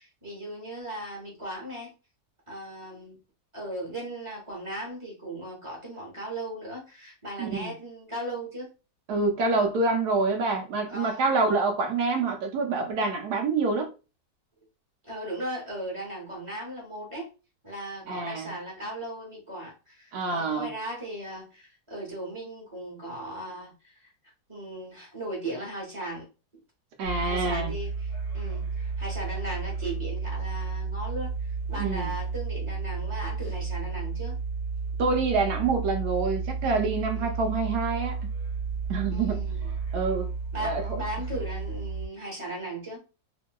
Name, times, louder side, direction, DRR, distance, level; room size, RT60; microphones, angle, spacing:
voice 1, 0.0-1.9 2.5-3.2 3.5-8.7 10.9-11.3 15.0-17.3 17.6-24.1 24.5-26.2 27.2-34.4 37.1-37.4 39.1-39.7 40.5-43.0, right 1 dB, 25° right, 0.8 m, -37 dB
voice 2, 7.4-7.7 9.1-13.9 18.1-18.5 20.1-20.7 27.0-27.7 31.8-32.1 35.0-38.3 38.9-39.4 39.9-40.3 40.6-41.0, right 3 dB, 70° right, 1.0 m, -27 dB
sound 1, 27.0-42.1, right 4 dB, 55° left, 1.0 m, -32 dB
2.9 x 2.6 x 2.2 m
omnidirectional pair, 1.9 m